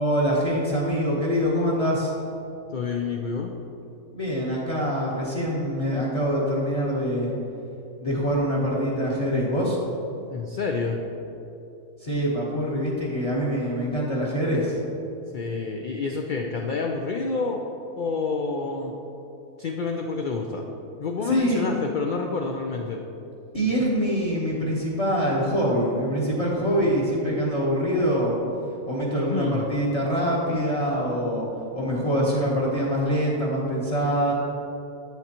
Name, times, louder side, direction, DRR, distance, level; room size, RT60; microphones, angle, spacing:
voice 1, 0.0-2.2 4.1-7.3 8.0-9.8 12.0-14.8 21.2-21.7 23.5-28.4 28.8-31.5 31.7-34.3, equal, 30° left, -4 dB, 1.0 m, -24 dB
voice 2, 2.7-3.5 10.3-11.0 15.3-17.6 18.0-18.9 19.6-20.6 21.0-23.0 29.2-29.6, left 4 dB, 70° left, 2 dB, 0.4 m, -28 dB
8.1 x 7.3 x 2.9 m, 2.8 s
omnidirectional pair, 1.4 m